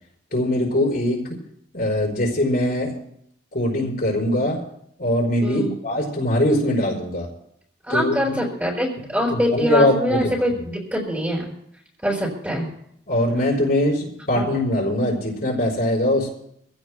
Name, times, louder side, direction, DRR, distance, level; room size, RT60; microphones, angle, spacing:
voice 1, 0.3-1.4 1.7-2.9 3.5-4.6 5.0-7.3 7.9-8.4 9.3-10.3 13.1-16.3, left 1 dB, 50° left, -3 dB, 5.0 m, -22 dB
voice 2, 5.4-5.8 7.9-11.5 12.0-12.7 14.4-14.5, equal, 10° right, -3 dB, 5.3 m, -24 dB
27.0 x 16.0 x 2.2 m, 0.71 s
head